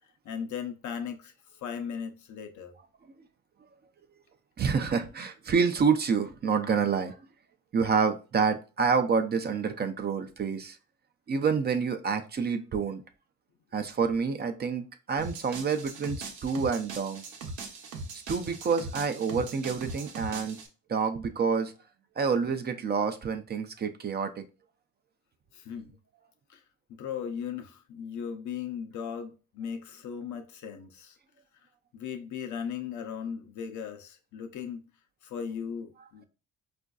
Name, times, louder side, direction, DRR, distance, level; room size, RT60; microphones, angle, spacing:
voice 1, 0.2-1.3 1.6-2.7 25.5-26.0 26.5-26.6 26.9-31.2 31.9-34.9 35.2-36.3, left 7 dB, 70° left, 0.7 m, -37 dB
voice 2, 4.6-7.2 7.7-10.8 11.3-13.0 13.7-17.2 18.1-20.6 20.9-21.7 22.2-24.5, right 5 dB, 35° right, 0.4 m, -28 dB
sound 1, 15.2-20.7, right 3 dB, 80° right, 0.8 m, -40 dB
4.3 x 2.5 x 2.3 m
cardioid pair, 90°, 30 cm